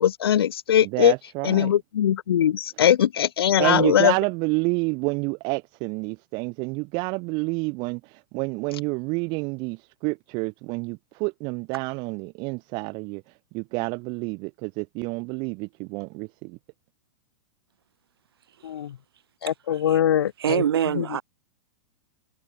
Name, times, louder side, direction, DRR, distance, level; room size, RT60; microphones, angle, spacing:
voice 1, 0.0-1.1 1.4-4.1 18.6-19.0 19.4-20.6 20.9-21.0, left 10 dB, 90° left, 1.1 m, -21 dB
voice 2, 0.8-1.7 3.6-16.6, right 29 dB, 40° right, 0.9 m, -29 dB
voice 3, 20.4-21.2, right 9 dB, 85° right, 2.9 m, -25 dB
hypercardioid pair, 145°, 12 cm